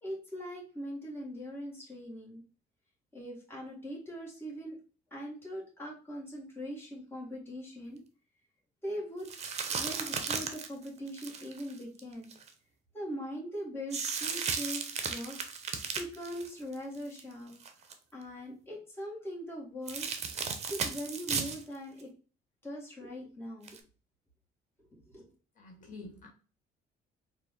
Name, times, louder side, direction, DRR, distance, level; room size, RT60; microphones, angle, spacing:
voice 1, 0.0-2.4 3.1-4.8 5.1-8.0 8.8-9.3 9.8-12.3 12.9-14.8 15.1-15.4 16.0-17.5 18.1-20.1 20.6-22.1 22.6-23.8 25.1-25.3, equal, 15° left, -3 dB, 1.7 m, -41 dB
sound 1, 9.3-12.5 13.9-17.2 17.5-17.9 19.9-21.6 22.0-22.1 23.7-23.8, right 6 dB, 40° right, 0.7 m, -35 dB
voice 2, 25.6-26.3, left 2 dB, 50° left, 0 dB, 1.5 m, -47 dB
4.1 x 2.5 x 3.6 m, 0.36 s
cardioid pair, 110°, 17 cm